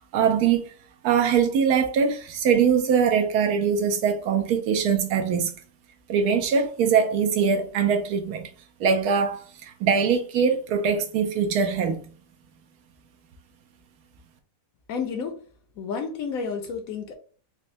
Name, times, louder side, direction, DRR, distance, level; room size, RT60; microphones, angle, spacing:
voice 1, 0.1-0.6 1.0-5.5 6.1-8.5 8.8-12.0, right 6 dB, 75° right, 1.1 m, -22 dB
voice 2, 14.9-15.4 15.8-17.1, left 5 dB, 70° left, 1.0 m, -31 dB
4.1 x 2.1 x 2.6 m
omnidirectional pair, 1.7 m